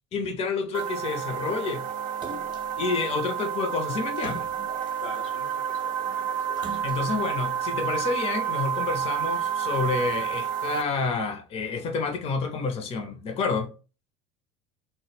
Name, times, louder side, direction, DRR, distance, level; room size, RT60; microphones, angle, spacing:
voice 1, 0.1-1.9 2.8-4.5 6.8-13.7, left 4 dB, 40° left, 0.6 m, -29 dB
sound 1, 0.7-10.8, right 8 dB, 60° right, 0.4 m, -30 dB
Splash splatter, 2.2-2.8 4.1-5.4 6.5-7.3 7.9-8.0, right 3 dB, 30° right, 0.8 m, -42 dB
voice 2, 5.0-6.8, left 5 dB, 85° left, 0.8 m, -45 dB
2.1 x 2.1 x 3.2 m
hypercardioid pair, 80°, 16 cm